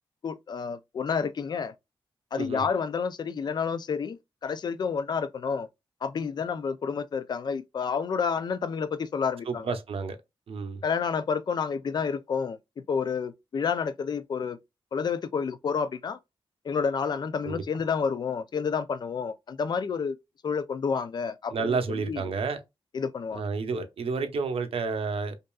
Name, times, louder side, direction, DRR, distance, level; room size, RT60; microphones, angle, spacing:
voice 1, 0.2-1.7 2.3-5.7 6.0-9.8 10.8-14.6 14.9-16.2 16.6-20.2 20.4-22.3 22.9-23.5, left 6 dB, 50° left, 0.4 m, -30 dB
voice 2, 9.5-10.2 10.5-10.8 17.4-17.6 21.5-22.6 23.3-25.4, right 4 dB, 90° right, 0.7 m, -30 dB
5.2 x 2.5 x 2.3 m
wide cardioid pair, 165°, 10 cm